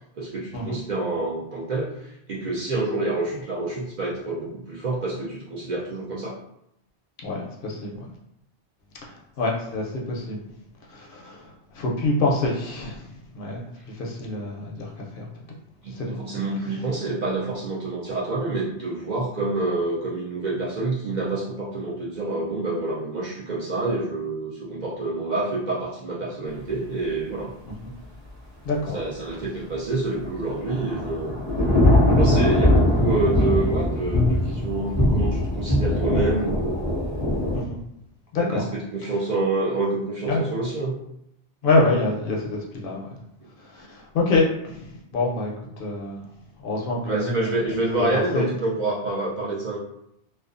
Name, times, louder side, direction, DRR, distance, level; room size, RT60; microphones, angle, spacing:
voice 1, 0.1-6.4 15.8-27.5 28.9-31.4 32.2-36.8 38.4-41.0 47.0-49.8, right 2 dB, 55° right, -5 dB, 0.5 m, -27 dB
voice 2, 7.2-8.1 9.4-10.4 10.9-11.5 11.7-13.0 13.4-14.9 15.2-15.3 16.0-16.1 27.8-27.9 28.6-29.0 37.5-37.8 38.3-38.6 40.3-40.5 41.6-43.1 43.7-45.5 45.8-46.2 46.6-47.5 48.1-48.5, left 2 dB, 65° left, -2 dB, 0.7 m, -26 dB
Thunder / Rain, 30.2-37.6, left 1 dB, 20° right, 0.8 m, -21 dB
2.4 x 2.2 x 2.4 m, 0.79 s
omnidirectional pair, 1.1 m